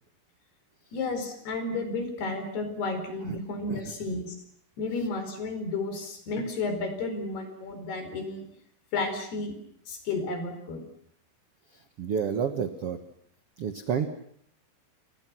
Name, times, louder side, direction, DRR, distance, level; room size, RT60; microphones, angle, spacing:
voice 1, 0.9-4.3 4.8-8.5 8.9-9.5 9.9-10.8, left 3 dB, 70° left, 7 dB, 6.6 m, -32 dB
voice 2, 11.7-13.0 13.6-14.1, right 7 dB, 60° right, 8 dB, 1.6 m, -30 dB
30.0 x 28.0 x 6.2 m, 0.68 s
omnidirectional pair, 4.8 m